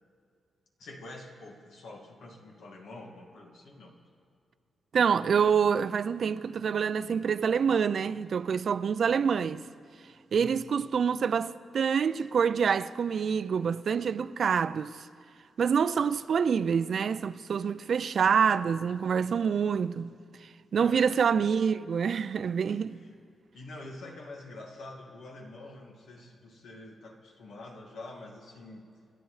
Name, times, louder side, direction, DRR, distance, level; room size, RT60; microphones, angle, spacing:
voice 1, 0.8-4.0 10.4-10.7 20.8-21.1 22.9-23.1 23.5-28.9, left 2 dB, 90° left, 1.9 m, -46 dB
voice 2, 4.9-9.6 10.3-15.0 15.6-20.1 20.7-23.0, right 6 dB, 65° right, 0.3 m, -26 dB
28.0 x 10.5 x 3.2 m
cardioid pair, 105°, 0 cm